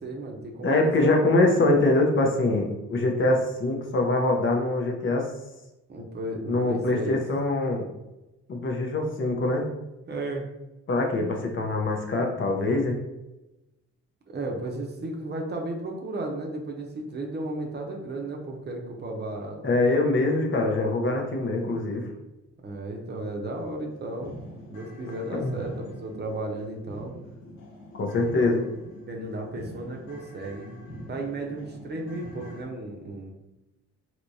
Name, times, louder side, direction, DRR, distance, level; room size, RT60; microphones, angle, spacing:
voice 1, 0.0-1.3 5.9-7.2 10.1-10.4 14.3-19.6 22.6-27.1 29.1-30.8 31.1-33.3, right 2 dB, 35° right, 0 dB, 0.7 m, -34 dB
voice 2, 0.6-5.3 6.5-7.9 8.5-9.7 10.9-13.0 19.6-22.1 25.4-25.5 28.0-28.7, left 2 dB, 40° left, 1 dB, 0.7 m, -24 dB
sound 1, 22.6-22.7 23.1-23.2 23.6-32.6, equal, 65° left, 1.2 m, -44 dB
3.3 x 2.9 x 2.7 m, 0.98 s
cardioid pair, 90°, 30 cm